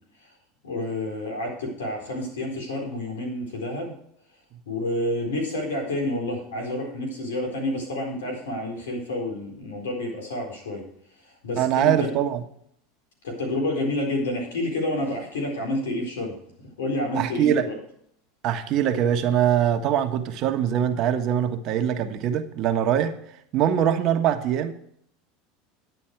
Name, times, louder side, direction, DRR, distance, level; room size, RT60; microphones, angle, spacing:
voice 1, 0.6-3.9 4.7-10.8 11.4-12.1 13.2-16.3 16.8-17.8, left 1 dB, 90° left, 2 dB, 4.2 m, -29 dB
voice 2, 11.6-12.4 17.1-17.6 18.4-23.1 23.5-24.7, right 10 dB, 50° right, 7 dB, 1.3 m, -23 dB
10.5 x 9.2 x 4.7 m, 0.68 s
hypercardioid pair, 100°, 0 cm